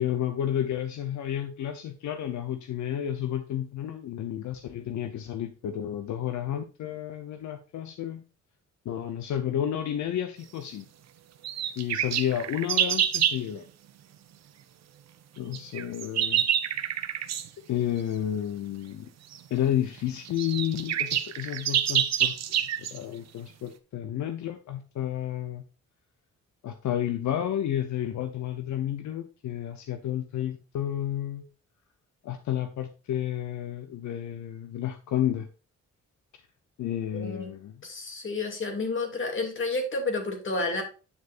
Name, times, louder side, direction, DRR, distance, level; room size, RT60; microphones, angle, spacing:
voice 1, 0.0-8.2 8.8-10.9 11.8-13.7 15.4-16.4 17.7-19.1 19.5-22.3 22.8-25.6 26.6-31.4 32.2-35.5 36.8-37.7, left 11 dB, 75° left, 8 dB, 0.8 m, -31 dB
sound 1, 11.4-13.4 15.5-17.5 19.3-19.4 20.0-20.1 20.2-23.0, right 10 dB, 65° right, 0.9 m, -27 dB
voice 2, 37.1-37.5 37.8-40.8, left 3 dB, 45° left, 3 dB, 2.6 m, -30 dB
9.3 x 6.6 x 2.5 m, 0.34 s
cardioid pair, 115°, 29 cm